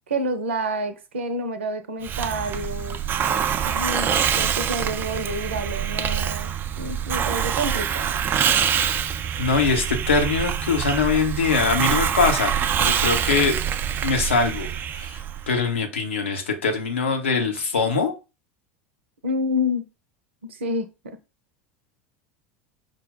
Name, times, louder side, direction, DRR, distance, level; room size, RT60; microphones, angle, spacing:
voice 1, 0.1-3.0 3.6-8.2 19.2-19.8 20.4-20.9, equal, 70° right, 0.6 m, -28 dB
Hiss, 2.0-15.5, right 8 dB, 30° right, 0.4 m, -25 dB
voice 2, 9.4-13.6 14.0-14.7 14.9-18.1, left 4 dB, 75° left, 0.9 m, -23 dB
5.2 x 2.2 x 3.7 m
figure-of-eight pair, 75°, 7 cm